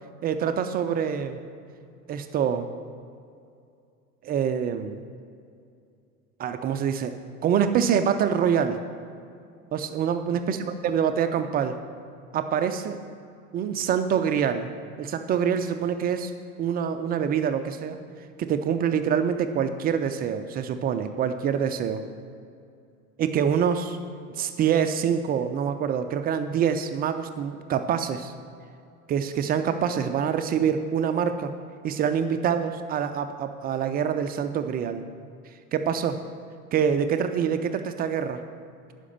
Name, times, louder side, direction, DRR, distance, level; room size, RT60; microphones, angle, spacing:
voice 1, 0.2-1.4 2.1-2.7 4.2-5.0 6.4-7.1 7.4-8.8 9.7-11.8 12.3-13.0 13.5-14.7 15.0-16.3 16.6-18.0 18.4-22.0 23.2-24.0 24.4-28.3 29.1-31.5 31.8-35.1 35.7-36.2 36.7-38.4, right 8 dB, 20° right, 9 dB, 0.4 m, -25 dB
9.7 x 5.8 x 6.7 m, 2.4 s
figure-of-eight pair, 80°, 46 cm